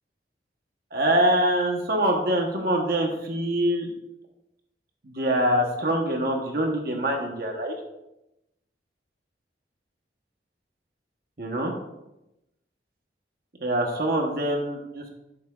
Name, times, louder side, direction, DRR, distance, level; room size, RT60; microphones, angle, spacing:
voice 1, 0.9-3.9 5.0-7.8 11.4-11.7 13.6-15.1, right 1 dB, 55° right, 1 dB, 1.2 m, -24 dB
13.0 x 6.9 x 2.5 m, 0.90 s
head